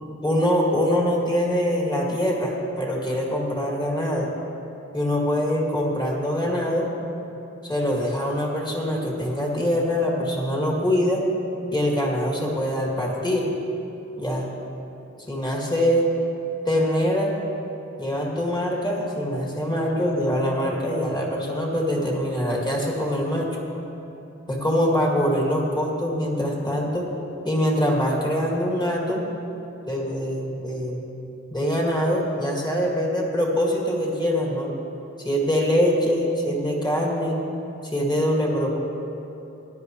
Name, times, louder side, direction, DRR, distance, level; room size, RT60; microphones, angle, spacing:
voice 1, 0.2-4.3 4.9-6.9 7.6-11.2 11.7-13.5 14.1-14.5 15.3-16.1 16.6-17.3 18.0-23.5 24.5-27.1 27.4-29.2 29.9-31.0 31.5-34.7 35.2-37.4 37.9-38.8, equal, 15° left, -2 dB, 2.3 m, -24 dB
17.5 x 11.0 x 3.2 m, 2.9 s
wide cardioid pair, 95°, 29 cm